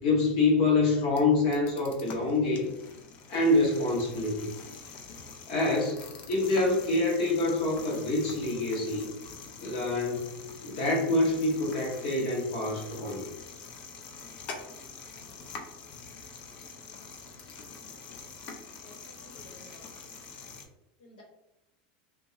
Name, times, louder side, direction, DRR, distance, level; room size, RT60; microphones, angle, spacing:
voice 1, 0.0-2.7 3.3-4.5 5.5-6.0 6.3-9.1 9.6-10.3 10.6-13.2, left 2 dB, 50° left, -2 dB, 0.8 m, -26 dB
sound 1, 0.8-20.7, left 5 dB, 30° left, 0.3 m, -45 dB
voice 2, 18.8-19.9 21.0-21.2, left 1 dB, 85° left, -2 dB, 1.1 m, -54 dB
2.9 x 2.3 x 2.7 m, 0.90 s
supercardioid pair, 180°, 5 cm